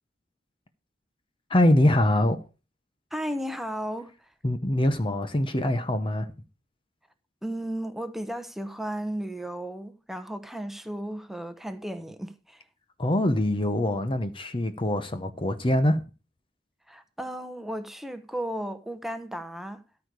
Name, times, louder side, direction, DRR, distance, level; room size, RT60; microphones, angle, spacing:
voice 1, 1.5-2.4 4.4-6.3 13.0-16.0, left 1 dB, 30° left, 0.8 m, -23 dB
voice 2, 3.1-4.1 7.4-12.6 16.9-19.8, right 1 dB, ahead, 1.0 m, -34 dB
13.0 x 4.8 x 6.7 m
head